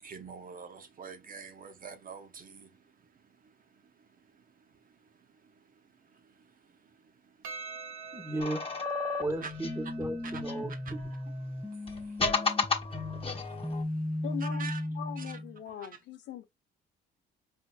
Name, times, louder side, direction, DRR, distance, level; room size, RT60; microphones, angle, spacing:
voice 1, 0.0-2.8 3.4-3.5 6.1-6.5 7.4-7.5 9.1-9.5 10.2-11.0 11.7-12.2 12.5-12.6 13.4-14.9 15.2-15.4 15.7-16.0, right 5 dB, 45° right, 0.8 m, -46 dB
Percussion, 7.4-12.1, right 5 dB, 80° right, 0.8 m, -47 dB
voice 2, 8.1-8.7 9.2-10.7, right 1 dB, 10° right, 1.0 m, -35 dB
sound 1, 8.4-11.1 11.9-13.8, left 4 dB, 25° left, 1.0 m, -33 dB
sound 2, 9.6-15.6, left 1 dB, 5° left, 0.6 m, -37 dB
voice 3, 14.2-16.4, left 9 dB, 60° left, 0.7 m, -41 dB
4.4 x 2.7 x 2.3 m
supercardioid pair, 65°, 21 cm